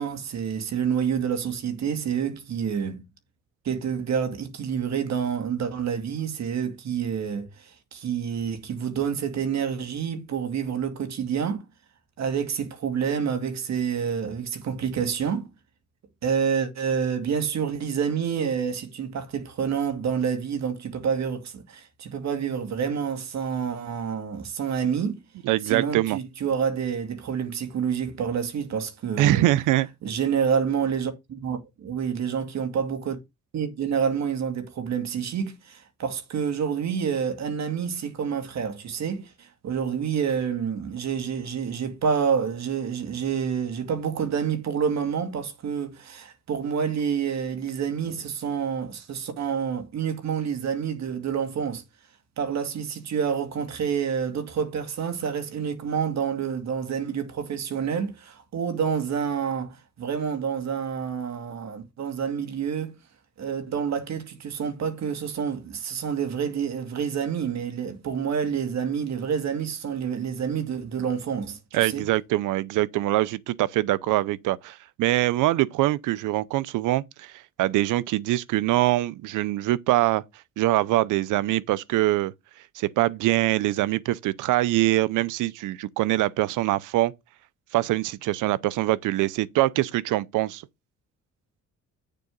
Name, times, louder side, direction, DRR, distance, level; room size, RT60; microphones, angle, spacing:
voice 1, 0.0-3.1 3.6-11.6 12.2-15.5 16.2-25.2 25.6-29.4 30.0-33.2 33.5-51.8 52.4-62.9 63.4-72.0, right 7 dB, 60° right, 2.3 m, -28 dB
voice 2, 25.4-26.2 29.2-29.9 71.7-77.3 77.6-80.2 80.6-82.3 82.8-87.1 87.7-90.6, right 16 dB, 85° right, 0.6 m, -23 dB
9.5 x 6.8 x 3.8 m
cardioid pair, 90°, 30 cm